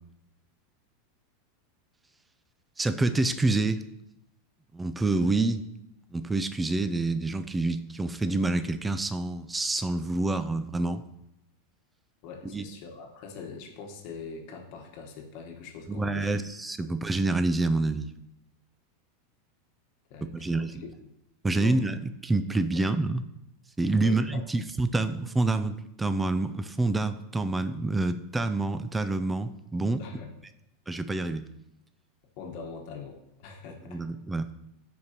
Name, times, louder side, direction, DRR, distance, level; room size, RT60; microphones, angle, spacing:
voice 1, 2.8-3.8 4.7-5.6 6.1-11.0 12.5-12.6 15.9-18.1 20.2-20.7 21.4-23.2 23.8-30.0 30.9-31.5 33.9-34.5, right 2 dB, 5° right, 11 dB, 0.3 m, -27 dB
voice 2, 12.2-16.3 16.8-17.0 20.1-20.9 21.5-21.8 24.0-24.4 30.0-30.3 32.4-34.0, left 5 dB, 40° left, 2 dB, 1.2 m, -43 dB
13.5 x 4.6 x 2.8 m, 0.86 s
supercardioid pair, 175°, 0 cm